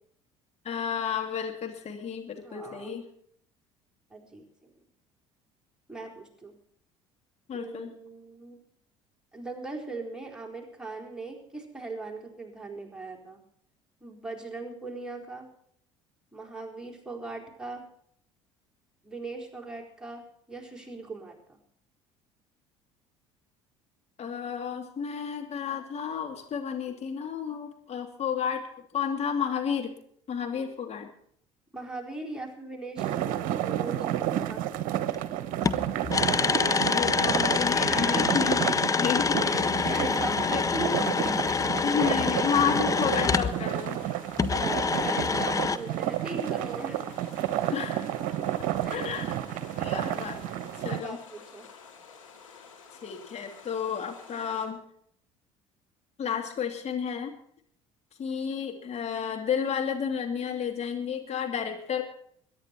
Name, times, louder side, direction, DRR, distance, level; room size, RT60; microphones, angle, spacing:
voice 1, 0.6-3.0 7.5-7.9 24.2-28.7 28.9-29.9 30.3-31.1 36.4-40.1 40.5-40.6 41.8-44.0 47.7-48.1 48.9-49.4 49.8-50.4 50.8-51.2 53.0-54.8 56.2-57.4 58.2-62.0, left 7 dB, 40° left, 4 dB, 2.6 m, -31 dB
voice 2, 2.4-3.0 4.1-4.7 5.9-6.5 7.5-8.6 9.3-13.4 14.0-15.5 16.3-17.8 19.0-21.6 31.7-33.1 33.7-34.6 37.8-38.4 39.4-41.0 42.0-42.3 44.6-47.0 48.8-49.2 50.9-51.6, right 3 dB, 5° right, 0 dB, 4.1 m, -39 dB
sound 1, 33.0-51.0, right 12 dB, 55° right, 0.9 m, -31 dB
sound 2, 35.1-35.2 35.6-43.6 44.4-45.8, left 5 dB, 20° left, 0.7 m, -26 dB
sound 3, 38.5-54.7, left 6 dB, 85° left, 2.1 m, -50 dB
22.5 x 10.0 x 4.5 m, 0.66 s
figure-of-eight pair, 60°, 16 cm